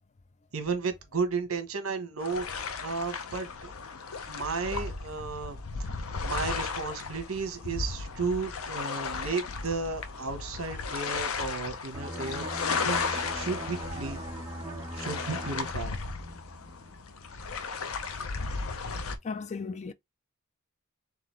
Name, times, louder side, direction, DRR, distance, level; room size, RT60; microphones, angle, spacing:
voice 1, 0.5-3.7 4.3-5.9 6.2-14.2 15.0-15.9, right 4 dB, 75° right, 1.1 m, -34 dB
sound 1, 2.2-19.2, left 4 dB, 75° left, 0.6 m, -35 dB
sound 2, 11.9-17.3 17.6-17.9, right 1 dB, 15° right, 0.8 m, -40 dB
voice 2, 19.2-19.9, left 4 dB, 30° left, 0.3 m, -35 dB
3.9 x 3.4 x 3.1 m
head